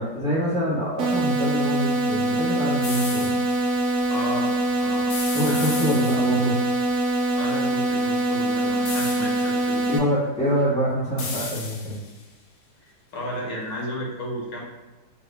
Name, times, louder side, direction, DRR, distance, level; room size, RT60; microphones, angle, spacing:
voice 1, 0.0-3.3 5.2-6.6 9.9-12.0, equal, 5° left, -8 dB, 1.0 m, -25 dB
sound 1, 1.0-10.0, right 2 dB, 85° right, 0.7 m, -24 dB
sound 2, 2.8-3.6 5.1-6.5 8.9-9.6 11.2-12.2, left 4 dB, 85° left, 1.5 m, -34 dB
voice 2, 4.1-4.5 4.8-5.1 5.4-5.7 7.4-9.9 12.8-14.6, equal, 50° left, -3 dB, 1.0 m, -33 dB
3.0 x 2.9 x 3.3 m, 1.2 s
omnidirectional pair, 2.1 m